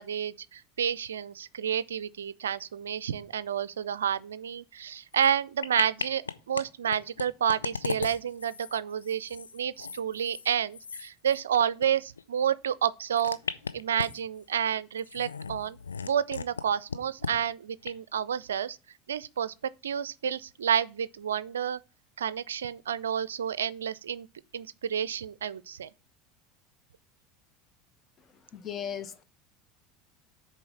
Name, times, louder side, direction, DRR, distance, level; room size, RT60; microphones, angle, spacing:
voice 1, 0.0-13.4 13.7-15.8 16.0-18.8 19.1-19.5 19.8-21.8 22.2-24.3 24.5-25.9, right 8 dB, 75° right, 0.4 m, -30 dB
sound 1, 5.1-5.3 5.6-6.6 6.9-11.9 12.2-12.3 13.1-14.4 15.0-16.6 16.9-17.3 17.8-17.9, left 5 dB, 80° left, 0.5 m, -37 dB
voice 2, 28.5-29.2, left 8 dB, 35° left, 1.0 m, -36 dB
6.9 x 4.4 x 6.8 m
figure-of-eight pair, 75°, 0 cm